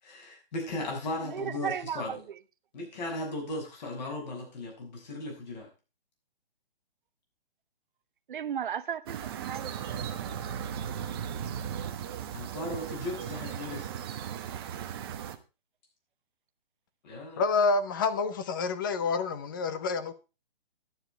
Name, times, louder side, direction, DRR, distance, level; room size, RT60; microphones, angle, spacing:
voice 1, 0.0-2.2 2.7-5.7 12.3-13.9 17.0-17.4, left 2 dB, 45° left, 6.5 m, -37 dB
voice 2, 1.3-2.2 8.3-9.7 10.2-10.3, right 8 dB, 55° right, 1.0 m, -35 dB
sound 1, 9.1-15.4, right 9 dB, 25° right, 0.9 m, -37 dB
voice 3, 17.4-20.1, left 4 dB, 20° left, 0.6 m, -28 dB
11.5 x 9.3 x 4.4 m
hypercardioid pair, 160°, 30 cm